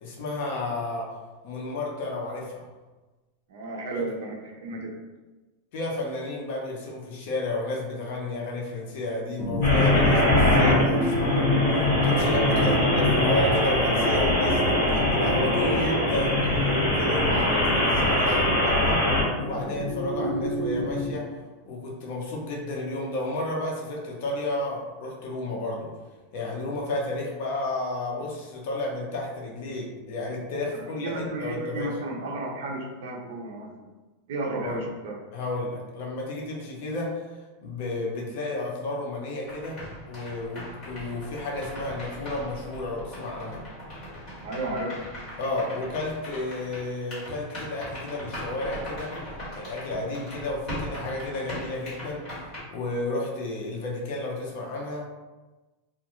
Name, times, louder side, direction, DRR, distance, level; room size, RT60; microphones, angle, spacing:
voice 1, 0.0-1.2 1.4-2.6 5.7-11.6 12.0-19.1 19.4-21.3 21.7-25.9 26.3-31.9 34.6-34.8 35.3-37.2 37.6-39.8 40.1-43.6 45.4-49.2 49.5-52.3 52.7-55.0, left 2 dB, 50° left, -2 dB, 0.6 m, -32 dB
voice 2, 3.5-4.9 12.5-13.0 17.2-17.8 30.7-33.7 34.3-35.2 44.4-44.9, right 2 dB, 60° right, 0 dB, 0.5 m, -33 dB
sound 1, 9.4-21.1, left 2 dB, ahead, 0.5 m, -28 dB
sound 2, 9.6-19.2, left 1 dB, 65° left, 1.2 m, -23 dB
sound 3, 39.5-52.6, equal, 25° left, 1.2 m, -39 dB
2.4 x 2.2 x 2.9 m, 1.2 s
supercardioid pair, 175°, 0 cm